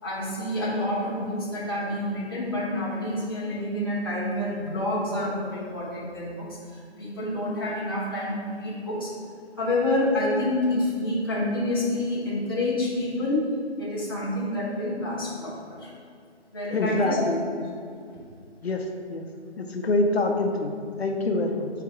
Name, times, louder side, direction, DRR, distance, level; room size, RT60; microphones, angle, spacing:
voice 1, 0.0-9.1 9.6-13.5 13.8-15.9 16.5-17.2, left 1 dB, 20° left, -7 dB, 0.8 m, -28 dB
voice 2, 16.7-17.4 18.6-19.3 19.6-21.7, left 2 dB, 65° left, 3 dB, 0.7 m, -25 dB
4.6 x 4.6 x 5.0 m, 2.3 s
hypercardioid pair, 175°, 34 cm